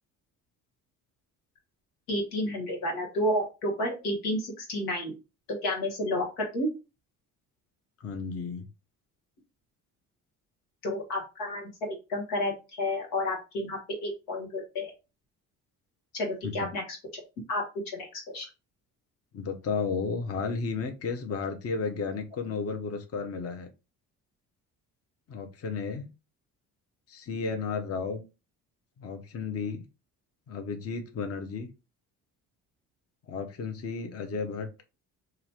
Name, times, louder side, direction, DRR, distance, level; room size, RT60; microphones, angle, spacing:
voice 1, 2.1-5.1 5.6-6.7 10.8-14.9 16.1-16.8 17.5-17.6 17.9-18.5, left 1 dB, 90° left, 0 dB, 1.2 m, -31 dB
voice 2, 8.0-8.7 16.4-16.7 19.3-23.7 25.3-26.1 27.1-28.2 29.0-29.8 30.5-31.7 33.3-34.7, left 5 dB, 35° left, 5 dB, 0.6 m, -33 dB
2.9 x 2.4 x 2.9 m, 0.29 s
hypercardioid pair, 60°, 42 cm